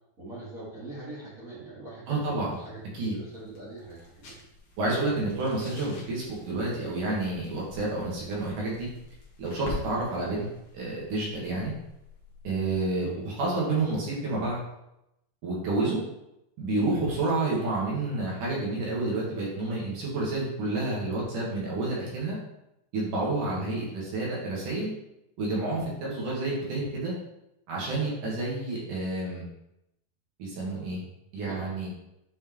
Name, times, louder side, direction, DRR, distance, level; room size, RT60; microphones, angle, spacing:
voice 1, 0.2-4.4 6.5-6.8 13.7-13.9 23.4-23.7 31.4-31.7, right 2 dB, 35° right, -8 dB, 1.3 m, -43 dB
voice 2, 2.1-2.5 2.9-3.1 4.8-8.9 9.4-10.5 10.7-11.7 12.4-14.6 15.4-16.0 16.6-22.4 22.9-24.9 25.4-27.1 27.7-29.4 30.4-31.0 31.3-31.9, right 2 dB, 60° right, -5 dB, 2.9 m, -29 dB
sound 1, 2.4-12.9, left 2 dB, 55° left, 1.9 m, -46 dB
9.2 x 4.6 x 3.1 m, 0.85 s
omnidirectional pair, 4.5 m